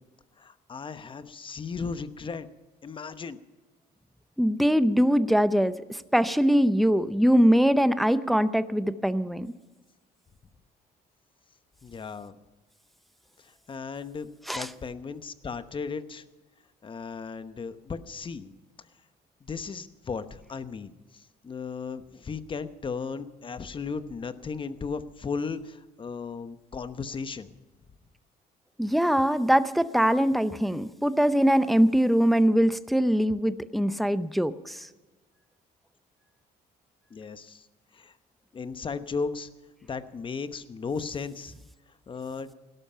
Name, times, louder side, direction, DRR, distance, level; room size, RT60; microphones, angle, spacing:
voice 1, 0.4-2.5 2.8-3.4 11.8-12.4 13.4-16.2 16.8-18.5 19.4-27.5 37.1-37.7 37.9-38.2 38.5-39.5 39.8-41.5 42.1-42.5, left 5 dB, 30° left, 11 dB, 1.0 m, -36 dB
voice 2, 4.4-9.5 14.5-14.7 28.8-34.9, equal, ahead, 13 dB, 0.6 m, -22 dB
17.5 x 12.0 x 5.7 m, 1.2 s
cardioid pair, 110°, 17 cm